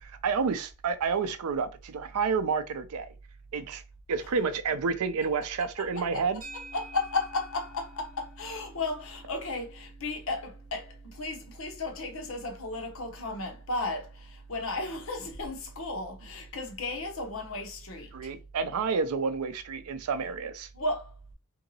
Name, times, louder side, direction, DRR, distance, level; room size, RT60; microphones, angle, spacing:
voice 1, 0.0-3.1 3.5-3.8 4.1-6.4 18.1-20.7, right 5 dB, 85° right, 0.4 m, -29 dB
voice 2, 5.8-6.2 6.5-18.3 20.7-21.3, left 2 dB, 65° left, 0.8 m, -34 dB
sound 1, 6.4-14.8, right 1 dB, 60° right, 1.4 m, -53 dB
2.8 x 2.6 x 2.7 m
head